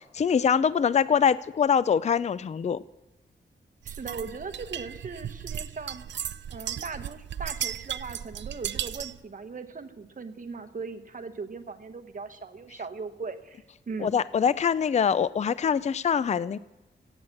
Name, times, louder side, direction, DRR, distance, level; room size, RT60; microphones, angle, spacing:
voice 1, 0.0-2.8 14.0-16.6, left 7 dB, 35° left, 0.4 m, -24 dB
voice 2, 3.8-6.0 6.5-14.2, right 4 dB, 45° right, 1.1 m, -39 dB
sound 1, 3.9-9.2, right 9 dB, 70° right, 0.4 m, -36 dB
16.5 x 8.1 x 7.1 m
wide cardioid pair, 135°, 19 cm